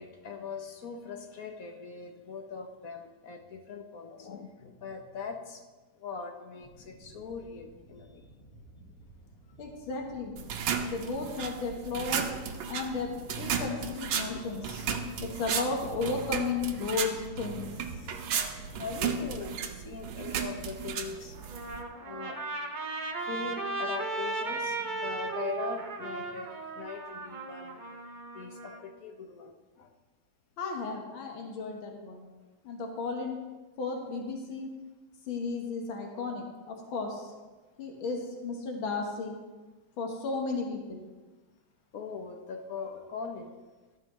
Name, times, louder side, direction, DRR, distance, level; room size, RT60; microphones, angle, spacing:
voice 1, 0.0-5.6 5.9-8.3 14.3-14.4 18.1-18.4 18.7-21.4 22.0-22.4 23.2-27.8 28.3-29.9 41.9-43.6, left 5 dB, 55° left, 4 dB, 1.1 m, -41 dB
sound 1, 6.6-20.0, right 2 dB, 25° left, 1.9 m, -53 dB
voice 2, 9.6-10.3 10.9-12.3 12.7-14.8 15.2-17.7 18.0-18.2 30.6-32.2 32.6-33.4 33.8-34.7 35.3-37.3 37.8-39.4 40.0-41.0, left 4 dB, 80° left, 2 dB, 2.1 m, -34 dB
sound 2, 10.4-21.8, right 7 dB, 85° right, 1.6 m, -34 dB
Trumpet, 21.3-28.8, right 3 dB, 70° right, 0.4 m, -36 dB
13.0 x 10.5 x 3.1 m, 1.3 s
omnidirectional pair, 2.2 m